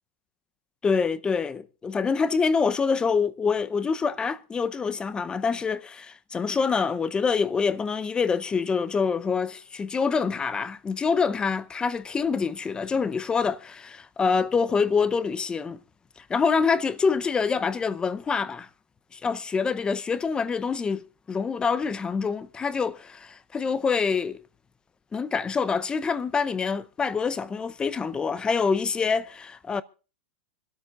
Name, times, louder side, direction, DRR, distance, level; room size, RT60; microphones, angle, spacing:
voice 1, 0.8-15.8 16.3-18.7 19.1-24.4 25.1-29.8, left 5 dB, 15° left, 0.6 m, -26 dB
25.5 x 13.0 x 2.4 m
supercardioid pair, 150°, 7 cm